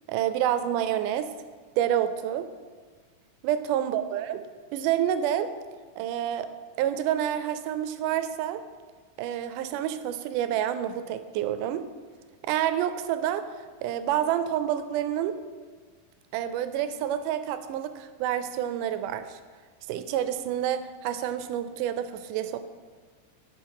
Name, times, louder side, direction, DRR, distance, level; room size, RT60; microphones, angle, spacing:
voice 1, 0.1-1.3 1.8-2.5 3.4-4.4 4.7-5.5 6.0-6.5 6.8-8.6 9.2-11.9 12.5-13.4 13.8-15.4 16.3-19.4 19.9-22.6, right 10 dB, 80° right, 11 dB, 2.0 m, -28 dB
9.8 x 5.7 x 4.7 m, 1.5 s
omnidirectional pair, 3.7 m